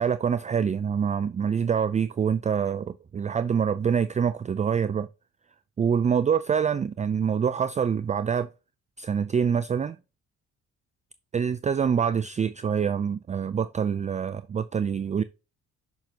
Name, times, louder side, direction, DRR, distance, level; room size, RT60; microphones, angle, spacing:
voice 1, 0.0-5.1 5.8-8.5 9.0-10.0 11.3-15.2, right 7 dB, 25° right, 0.4 m, -25 dB
7.0 x 5.8 x 2.8 m
cardioid pair, 90°, 30 cm